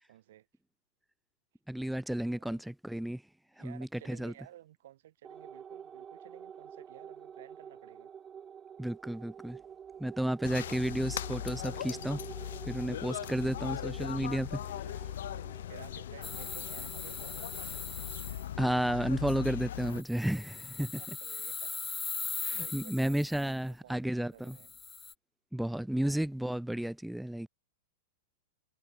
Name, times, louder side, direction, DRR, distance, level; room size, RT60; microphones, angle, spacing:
voice 1, 0.1-0.5 2.3-2.6 3.6-8.1 15.2-17.8 20.6-21.9 22.5-24.7 26.0-26.2, right 13 dB, 60° right, 7.9 m, -55 dB
voice 2, 1.7-3.2 3.6-4.3 8.8-9.6 10.0-12.2 12.7-14.6 18.6-20.9 22.4-24.6 25.5-27.5, right 1 dB, ahead, 0.9 m, -32 dB
sound 1, 5.2-20.0, right 8 dB, 20° right, 5.8 m, -49 dB
sound 2, 10.4-20.0, left 11 dB, 65° left, 2.6 m, -39 dB
sound 3, 16.2-18.4 19.9-23.4 24.5-25.1, left 5 dB, 15° left, 0.5 m, -40 dB
figure-of-eight pair, 100°, 0 cm